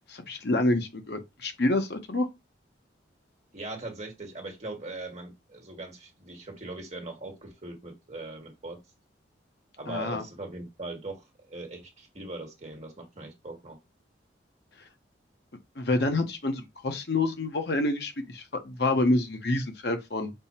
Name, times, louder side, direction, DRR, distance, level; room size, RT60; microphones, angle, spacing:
voice 1, 0.1-2.3 9.9-10.2 15.8-20.3, left 2 dB, 60° left, 0.9 m, -27 dB
voice 2, 3.5-8.8 9.8-13.8, right 2 dB, 35° right, 1.4 m, -40 dB
5.4 x 2.1 x 4.2 m
head